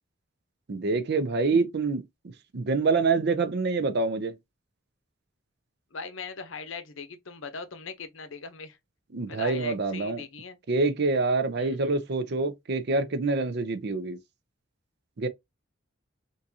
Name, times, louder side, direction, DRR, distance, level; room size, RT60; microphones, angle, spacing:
voice 1, 0.7-2.0 2.5-4.3 9.1-10.2 10.7-14.2 15.2-15.3, right 3 dB, 55° right, 0.5 m, -26 dB
voice 2, 5.9-8.8 9.3-10.6 11.6-11.9, left 4 dB, 75° left, 0.8 m, -40 dB
3.6 x 2.6 x 2.7 m
head